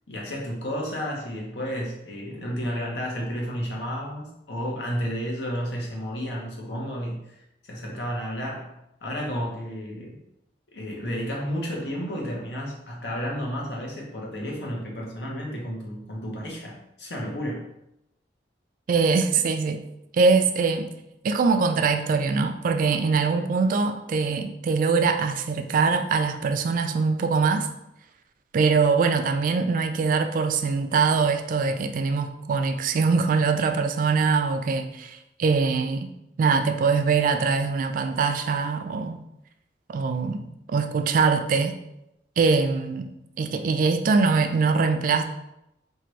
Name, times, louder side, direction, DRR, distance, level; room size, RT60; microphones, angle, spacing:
voice 1, 0.1-7.2 7.6-10.2 10.7-17.6, equal, 75° left, 1.0 m, -32 dB
voice 2, 18.9-19.8 20.1-20.9 21.2-27.7 28.5-36.1 36.4-39.2 39.9-40.4 40.7-41.8 42.4-43.1 43.4-45.2, right 4 dB, 50° right, 0.3 m, -23 dB
4.5 x 2.5 x 3.1 m
head